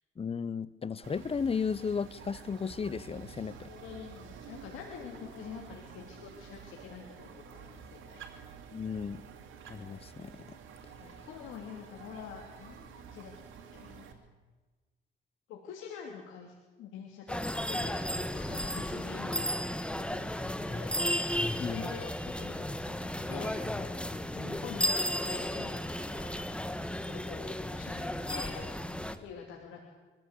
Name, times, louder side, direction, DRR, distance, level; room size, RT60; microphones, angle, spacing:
voice 1, 0.2-3.7 8.7-9.2 9.7-10.6 21.6-21.9, left 6 dB, 30° left, 18 dB, 0.8 m, -34 dB
sound 1, 1.0-14.1, right 6 dB, 85° right, 2.6 m, -50 dB
voice 2, 3.7-8.2 11.0-14.2 15.5-18.0 18.3-21.0 21.7-23.9 24.3-26.3 27.0-28.8 29.2-29.8, left 7 dB, 90° left, 0 dB, 2.8 m, -47 dB
sound 2, 17.3-29.2, left 1 dB, 5° left, 1.5 m, -34 dB
24.0 x 15.0 x 8.3 m, 1.3 s
cardioid pair, 90°, 20 cm